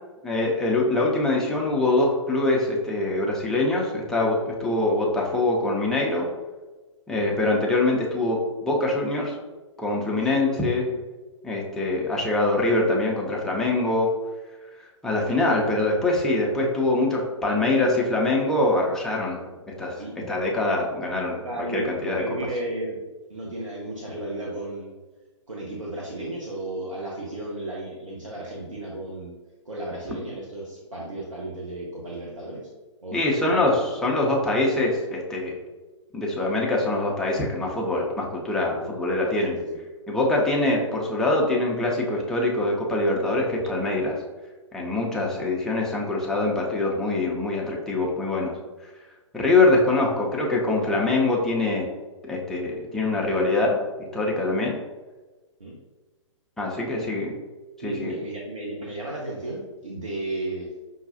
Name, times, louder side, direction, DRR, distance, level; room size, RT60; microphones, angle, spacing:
voice 1, 0.2-6.3 7.1-9.4 9.8-10.9 11.4-14.1 15.0-19.4 19.8-19.9 20.3-22.2 33.1-35.5 36.1-39.6 40.1-44.1 44.7-48.5 49.3-51.9 52.2-53.8 54.1-54.8 56.6-57.3 57.8-58.1, left 2 dB, 5° left, -3 dB, 0.5 m, -24 dB
voice 2, 20.0-20.3 20.8-20.9 21.1-23.0 23.3-24.9 25.5-29.3 29.7-32.7 33.0-34.3 38.7-38.9 39.4-39.8 40.4-40.5 45.2-45.4 55.6-55.7 57.8-60.7, right 1 dB, 80° right, -4 dB, 0.8 m, -34 dB
5.4 x 2.3 x 2.5 m, 1.2 s
figure-of-eight pair, 120°, 16 cm